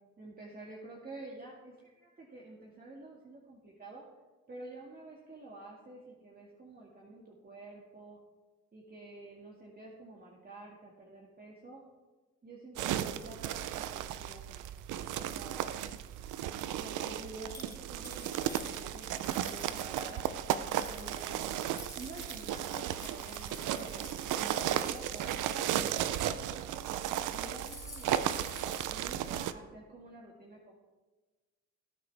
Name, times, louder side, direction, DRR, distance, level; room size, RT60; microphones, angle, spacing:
voice 1, 0.2-4.1 4.5-8.2 8.7-11.8 12.4-14.7 15.1-15.7 16.8-20.3 20.8-21.6 21.9-26.7 27.3-30.8, right 2 dB, 30° right, -3 dB, 2.0 m, -49 dB
sound 1, 12.8-29.5, right 11 dB, 85° right, 0.7 m, -35 dB
sound 2, 17.5-20.2 20.6-26.4 26.8-27.1 27.3-28.9, left 2 dB, 10° left, 2.5 m, -51 dB
18.5 x 8.8 x 3.5 m, 1.3 s
cardioid pair, 90°, 30 cm